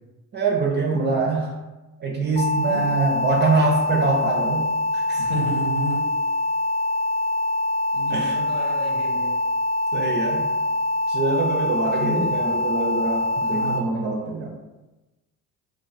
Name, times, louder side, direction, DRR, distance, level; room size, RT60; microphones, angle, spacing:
voice 1, 0.3-1.5 2.0-4.7 4.9-5.3 8.1-8.4 9.9-10.5 11.1-14.5, right 3 dB, 25° right, 0 dB, 0.3 m, -24 dB
voice 2, 0.9-1.3 2.6-3.0 5.2-6.0 7.9-9.4 12.0-12.6 13.4-14.1, right 1 dB, 75° left, -1 dB, 1.0 m, -31 dB
sound 1, 2.4-13.8, left 2 dB, 15° left, 0.8 m, -24 dB
3.0 x 2.4 x 2.4 m, 1.1 s
hypercardioid pair, 65°, 48 cm